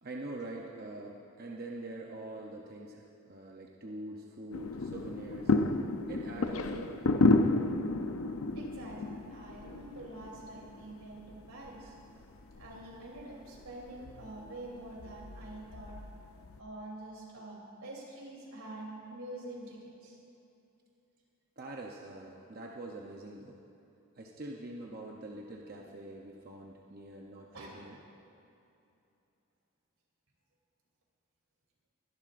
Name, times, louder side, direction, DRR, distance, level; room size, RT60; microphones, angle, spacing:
voice 1, 0.0-5.5 6.1-7.2 21.6-23.6 24.2-28.0, right 2 dB, 45° right, -1 dB, 0.7 m, -44 dB
sound 1, 4.5-16.6, left 2 dB, 75° left, 0.6 m, -32 dB
voice 2, 8.5-11.9 12.6-16.0 16.6-20.2 27.5-27.8, right 2 dB, 85° right, -3 dB, 3.2 m, -46 dB
22.5 x 11.5 x 2.5 m, 2.7 s
head